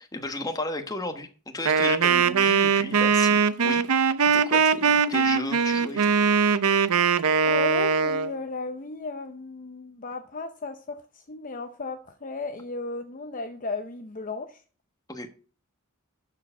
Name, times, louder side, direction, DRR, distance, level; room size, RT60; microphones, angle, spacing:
voice 1, 0.0-6.1 15.1-15.3, left 2 dB, 15° left, 1.3 m, -34 dB
Wind instrument woodwind instrument, 1.7-8.3, right 6 dB, 85° right, 0.7 m, -21 dB
voice 2, 7.4-14.6, left 3 dB, 40° left, 0.7 m, -35 dB
12.0 x 4.8 x 7.1 m
head